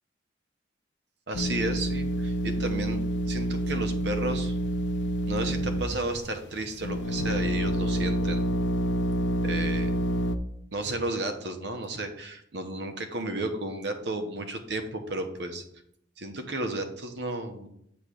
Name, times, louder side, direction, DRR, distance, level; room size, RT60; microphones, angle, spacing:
sound 1, 1.3-6.2 6.8-10.4, right 1 dB, 75° left, 0.5 m, -28 dB
voice 1, 1.3-4.6 5.3-8.5 9.4-9.9 10.7-15.6 16.2-17.7, right 2 dB, 65° right, 6 dB, 1.0 m, -33 dB
8.5 x 3.2 x 6.3 m, 0.73 s
head